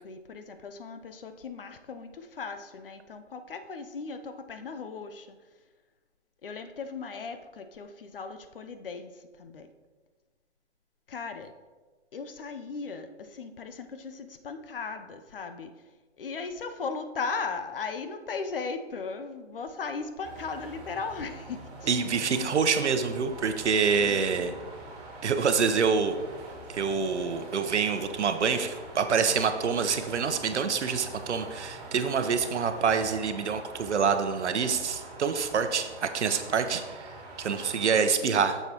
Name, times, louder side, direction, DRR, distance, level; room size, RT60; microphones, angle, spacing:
voice 1, 0.0-5.3 6.4-9.7 11.1-11.5 12.1-15.8 16.2-21.9 24.0-24.5, left 4 dB, 50° left, 8 dB, 0.6 m, -37 dB
sound 1, 20.2-38.1, right 2 dB, 35° right, 1.8 m, -44 dB
voice 2, 21.9-24.5 25.2-26.2 26.7-38.6, right 6 dB, 75° right, 8 dB, 0.9 m, -26 dB
9.5 x 7.0 x 2.9 m, 1.4 s
hypercardioid pair, 165°, 35 cm